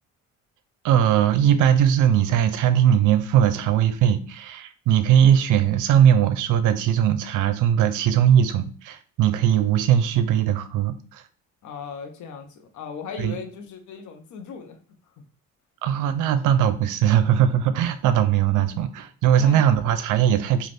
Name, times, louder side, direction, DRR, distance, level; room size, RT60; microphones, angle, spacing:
voice 1, 0.8-11.2 13.2-13.3 15.8-20.7, right 9 dB, 85° right, 11 dB, 0.5 m, -20 dB
voice 2, 11.6-14.8 19.3-19.6, left 6 dB, 75° left, 5 dB, 0.7 m, -37 dB
2.5 x 2.4 x 3.3 m, 0.42 s
cardioid pair, 90°, 30 cm